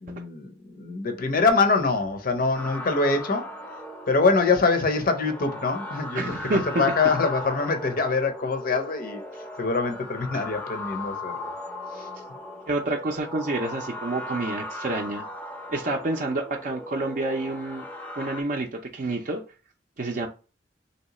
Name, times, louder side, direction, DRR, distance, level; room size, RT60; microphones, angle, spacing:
voice 1, 0.0-3.5 4.1-9.2 9.6-11.5 12.0-12.1, left 4 dB, 55° left, 0.6 m, -24 dB
sound 1, 2.5-18.4, left 1 dB, 10° left, 0.5 m, -38 dB
voice 2, 6.1-6.9 12.7-15.2 15.7-17.8 18.2-19.4 20.0-20.3, right 2 dB, 45° right, 0.5 m, -28 dB
3.1 x 2.9 x 2.9 m
head